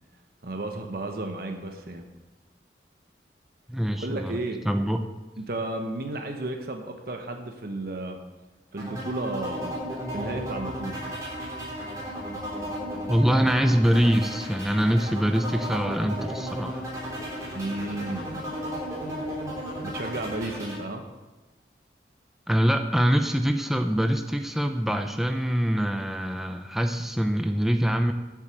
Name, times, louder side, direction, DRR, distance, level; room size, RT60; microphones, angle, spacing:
voice 1, 0.4-2.1 3.9-4.6 5.4-8.2 8.7-9.8 10.1-11.0 17.5-18.3 19.8-21.0, right 2 dB, 55° right, 4 dB, 1.0 m, -33 dB
voice 2, 3.7-4.3 4.6-5.0 13.1-16.8 22.5-28.1, equal, ahead, 6 dB, 0.5 m, -24 dB
sound 1, 8.8-20.8, equal, 20° right, 3.3 m, -34 dB
sound 2, 9.9-20.5, equal, 50° left, 3.0 m, -45 dB
7.5 x 7.5 x 7.9 m, 1.1 s
head